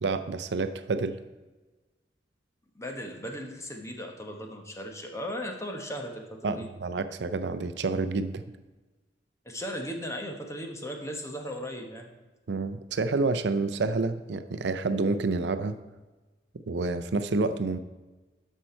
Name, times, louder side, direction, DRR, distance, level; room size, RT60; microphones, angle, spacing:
voice 1, 0.0-1.2 6.4-8.4 12.5-15.8 16.7-17.8, right 3 dB, 70° right, 11 dB, 0.5 m, -28 dB
voice 2, 2.7-6.7 9.4-12.1, equal, 15° left, 3 dB, 1.2 m, -37 dB
12.5 x 5.7 x 4.4 m, 1.2 s
head